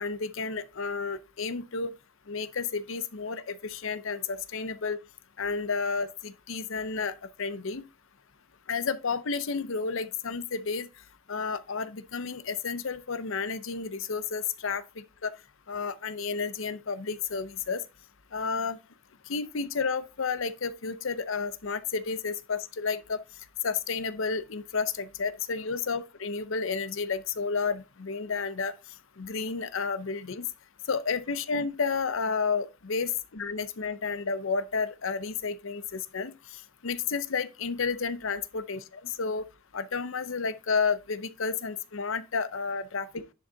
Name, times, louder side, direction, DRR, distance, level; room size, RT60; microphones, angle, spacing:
voice 1, 0.0-1.9 2.3-5.0 5.4-7.8 8.7-10.9 11.3-15.3 15.7-17.8 18.3-18.8 19.3-23.2 23.6-28.7 29.2-30.5 30.9-38.8 39.2-39.4 39.7-43.0, left 5 dB, 65° left, 0.6 m, -31 dB
10.5 x 3.8 x 3.9 m
head